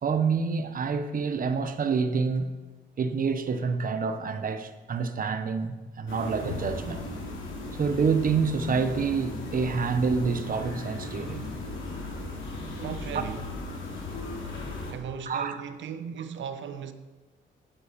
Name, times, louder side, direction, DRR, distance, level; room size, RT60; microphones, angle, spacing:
voice 1, 0.0-2.5 3.0-7.0 7.8-11.5 15.3-15.6, right 5 dB, 45° right, 1.1 m, -27 dB
sound 1, 6.1-14.9, left 2 dB, 80° left, 3.2 m, -37 dB
voice 2, 12.7-13.5 14.9-16.9, right 7 dB, 70° right, 1.1 m, -37 dB
11.5 x 9.6 x 5.3 m
cardioid pair, 90°, 20 cm